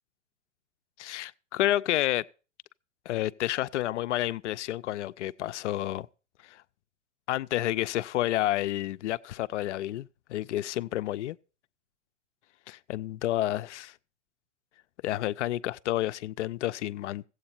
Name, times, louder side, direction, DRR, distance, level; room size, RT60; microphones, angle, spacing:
voice 1, 1.0-2.2 3.1-6.1 6.4-6.6 7.3-11.4 12.7-13.9 15.0-17.2, left 14 dB, 75° left, 0.5 m, -30 dB
15.0 x 8.1 x 4.2 m
hypercardioid pair, 115°, 36 cm